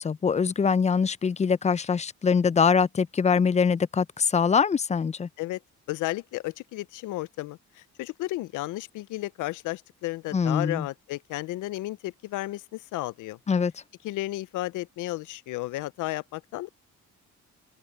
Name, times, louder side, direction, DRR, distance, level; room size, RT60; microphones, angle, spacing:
voice 1, 0.0-5.3 10.3-10.9 13.5-13.7, left 6 dB, 25° left, 0.4 m, -23 dB
voice 2, 5.9-13.4 14.0-16.7, left 17 dB, 85° left, 0.6 m, -33 dB
cardioid pair, 90°, 30 cm